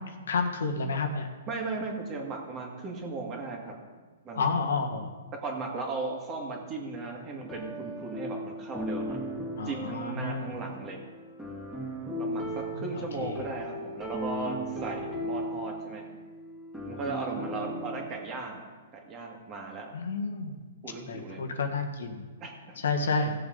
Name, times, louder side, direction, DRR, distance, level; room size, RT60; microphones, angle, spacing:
voice 1, 0.1-1.3 4.3-5.1 9.6-10.6 12.4-13.5 19.9-20.6 21.1-22.2 22.8-23.3, left 4 dB, 80° left, 4 dB, 1.6 m, -31 dB
voice 2, 1.5-3.7 4.2-4.4 5.4-9.2 9.6-11.0 12.1-16.0 16.9-18.6 19.0-19.9 20.8-21.4 22.4-22.8, right 3 dB, 25° right, 0 dB, 2.2 m, -36 dB
sound 1, 7.4-18.1, equal, 5° right, 2.4 m, -37 dB
17.5 x 7.0 x 4.0 m, 1.4 s
hypercardioid pair, 155°, 0 cm